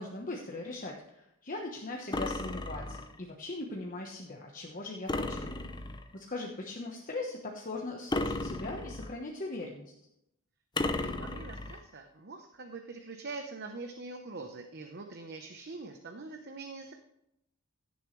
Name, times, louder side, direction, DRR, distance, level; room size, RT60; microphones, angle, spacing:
voice 1, 0.0-5.5 6.1-9.9, left 2 dB, 40° left, 0 dB, 1.1 m, -39 dB
sound 1, 2.1-3.2 5.1-6.1 8.1-9.2 10.8-11.8, left 2 dB, 20° left, 0.7 m, -34 dB
voice 2, 10.8-16.9, right 3 dB, 50° right, 4 dB, 0.9 m, -44 dB
16.5 x 7.1 x 3.2 m, 0.81 s
head